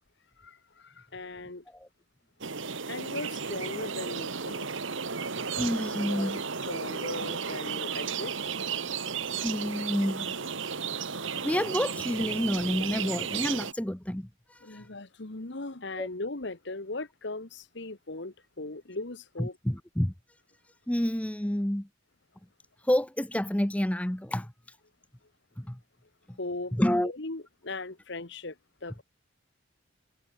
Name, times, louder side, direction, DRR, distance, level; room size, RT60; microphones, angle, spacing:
voice 1, 0.4-1.6 2.9-4.7 5.8-6.3 6.6-8.3 14.6-19.6 26.4-26.8 27.0-28.5 28.8-29.0, left 2 dB, 55° left, 1.5 m, -38 dB
sound 1, 2.4-13.7, right 6 dB, 65° right, 1.7 m, -34 dB
voice 2, 5.6-6.4 9.4-10.3 11.4-14.9 16.0-16.1 19.4-20.1 20.9-21.9 22.8-24.5 25.6-25.8 26.3-26.4 26.7-27.1, equal, 5° left, 0.7 m, -29 dB
head